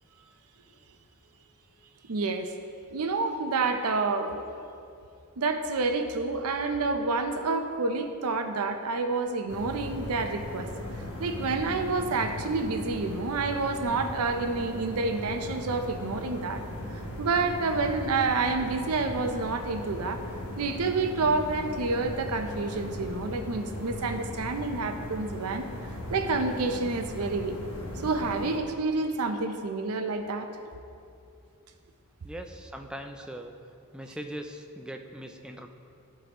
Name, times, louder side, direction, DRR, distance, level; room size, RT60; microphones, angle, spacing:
voice 1, 2.1-2.5 2.9-4.4 5.4-10.7 11.2-16.6 17.2-20.2 20.6-25.7 26.1-27.6 28.0-30.5, right 3 dB, 80° right, 6 dB, 0.6 m, -28 dB
sound 1, 9.5-28.6, left 1 dB, 80° left, 1.1 m, -38 dB
voice 2, 32.2-33.5 33.9-35.7, right 1 dB, 5° right, 4 dB, 0.3 m, -40 dB
12.5 x 4.7 x 3.0 m, 2.6 s
head